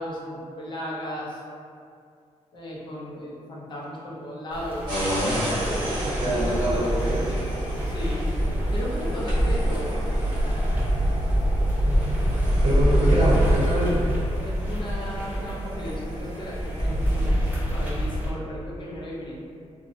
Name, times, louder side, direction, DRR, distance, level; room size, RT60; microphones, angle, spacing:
voice 1, 0.0-1.4 2.5-5.0 6.3-7.0 7.9-8.3 8.7-10.0 14.4-19.3, equal, 40° left, -5 dB, 0.4 m, -35 dB
sound 1, 4.5-18.3, equal, 15° right, 0.5 m, -25 dB
sound 2, 4.9-17.3, equal, 40° right, 0.9 m, -34 dB
voice 2, 6.0-7.2 12.6-14.1, right 1 dB, 70° right, -6 dB, 0.7 m, -25 dB
2.5 x 2.0 x 2.5 m, 2.3 s
wide cardioid pair, 155°, 12 cm